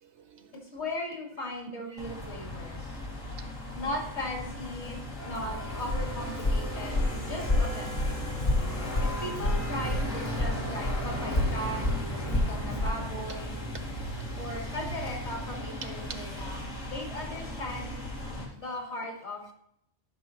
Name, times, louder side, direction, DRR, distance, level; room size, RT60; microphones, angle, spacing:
voice 1, 0.0-0.5 2.7-2.8 3.4-3.5 7.5-7.6 8.1-9.0 14.1-14.3 15.8-15.9 18.6-18.8, right 6 dB, 65° right, 8 dB, 0.9 m, -50 dB
voice 2, 0.7-3.0 3.7-8.2 9.0-13.6 14.4-18.0 18.6-19.5, left 1 dB, 55° left, 0 dB, 2.3 m, -38 dB
sound 1, 2.0-18.4, equal, 75° left, 2.4 m, -36 dB
Walk footsteps, 5.3-10.1 10.4-13.0, left 1 dB, 40° left, 1.2 m, -29 dB
12.0 x 6.0 x 3.0 m, 0.73 s
omnidirectional pair, 1.3 m